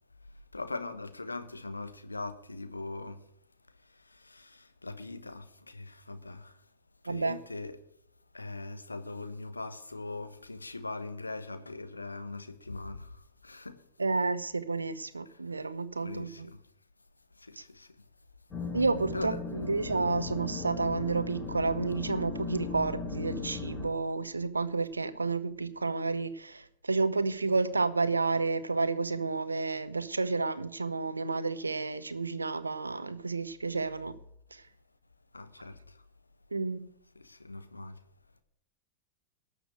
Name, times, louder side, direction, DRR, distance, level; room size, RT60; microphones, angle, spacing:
voice 1, 0.5-3.2 3.8-6.6 7.0-7.8 8.3-13.8 15.2-15.4 16.0-16.6 17.4-18.0 19.1-19.4 35.3-36.0 37.1-38.0, left 3 dB, 80° left, 1.2 m, -41 dB
voice 2, 14.0-16.5 18.7-34.1 34.5-34.6 36.5-36.9, right 3 dB, 80° right, 0.9 m, -31 dB
sound 1, 18.5-23.9, left 4 dB, 20° left, 3.6 m, -37 dB
12.5 x 6.7 x 7.9 m
figure-of-eight pair, 90°, 0 cm